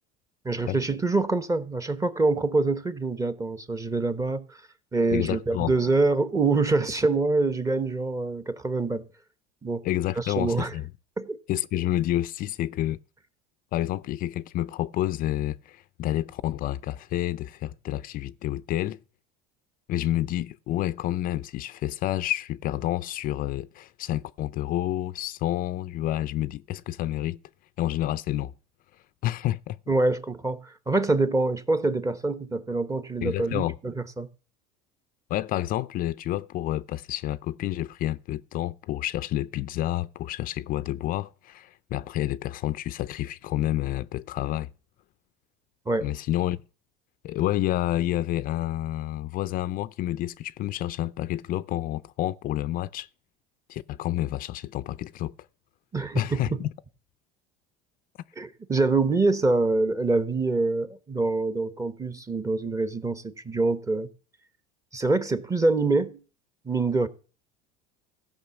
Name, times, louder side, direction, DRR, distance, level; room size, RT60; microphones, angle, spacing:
voice 1, 0.4-4.6 4.9-9.1 9.6-9.8 10.2-10.7 11.2-11.4 29.9-34.3 45.9-46.1 55.9-56.4 58.4-64.1 64.9-66.2 66.6-67.1, right 3 dB, 15° right, 1.0 m, -25 dB
voice 2, 5.1-5.8 9.8-10.9 11.5-13.0 13.7-19.0 19.9-27.4 27.8-28.5 29.2-29.8 33.2-33.8 35.3-44.7 46.0-46.6 47.2-53.1 53.7-55.3 56.1-56.7, left 14 dB, 45° left, 0.5 m, -29 dB
15.5 x 5.6 x 7.1 m
supercardioid pair, 105°, 19 cm